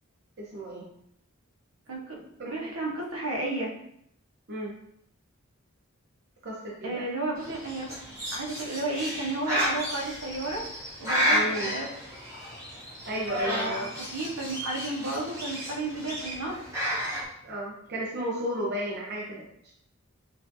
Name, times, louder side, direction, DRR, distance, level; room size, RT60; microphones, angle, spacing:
voice 1, 0.4-0.8 2.4-2.5 4.5-4.7 6.4-7.0 11.3-11.7 13.1-13.9 17.4-19.5, right 1 dB, 50° right, -4 dB, 0.7 m, -33 dB
voice 2, 1.9-3.7 6.8-7.9 8.3-10.6 11.0-11.9 13.3-16.6, right 2 dB, 75° right, -2 dB, 1.1 m, -33 dB
Bird, 7.4-17.2, equal, 15° right, 1.4 m, -32 dB
6.6 x 2.6 x 2.7 m, 0.71 s
head